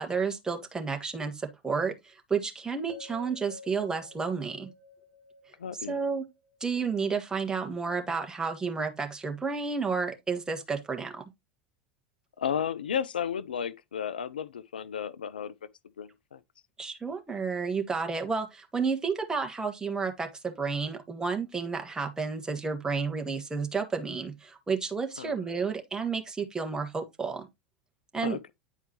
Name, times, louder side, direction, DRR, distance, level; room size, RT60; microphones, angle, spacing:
voice 1, 0.0-4.7 5.9-6.2 6.6-11.2 16.8-27.5 28.1-28.4, right 5 dB, 15° right, 1.6 m, -31 dB
sound 1, 2.9-7.0, left 3 dB, 30° right, 2.1 m, -50 dB
voice 2, 5.6-6.0 12.4-15.5 16.0-16.4 25.2-25.4 28.2-28.5, left 8 dB, 80° left, 0.4 m, -33 dB
9.9 x 4.5 x 2.9 m
hypercardioid pair, 85°, 5 cm